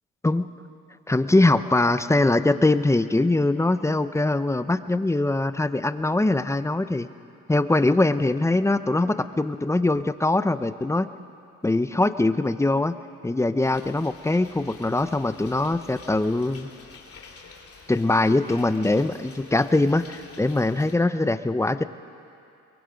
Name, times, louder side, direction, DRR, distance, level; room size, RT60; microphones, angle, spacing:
voice 1, 1.1-7.1 7.5-11.1 11.6-12.9 13.2-16.7 17.9-21.8, left 2 dB, 10° left, 12 dB, 0.7 m, -22 dB
sound 1, 13.6-20.9, left 4 dB, 50° left, 2.6 m, -48 dB
23.0 x 22.5 x 5.2 m, 2.5 s
cardioid pair, 90°, 30 cm